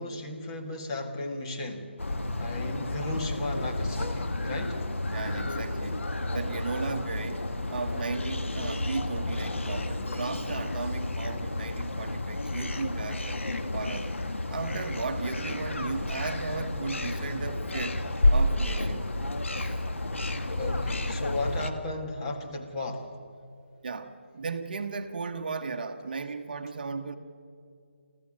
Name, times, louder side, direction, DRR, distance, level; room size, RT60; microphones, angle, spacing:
voice 1, 0.0-1.9 2.4-4.8 20.6-23.1, left 2 dB, 25° left, 2 dB, 1.7 m, -35 dB
sound 1, 2.0-21.7, left 2 dB, 85° left, 1.9 m, -31 dB
voice 2, 5.1-6.0 6.3-13.4 13.7-14.1 14.5-18.0 18.3-19.0 19.6-19.8 23.8-27.2, right 4 dB, 45° right, 7 dB, 1.3 m, -35 dB
28.5 x 14.0 x 7.6 m, 2.4 s
figure-of-eight pair, 165°, 7 cm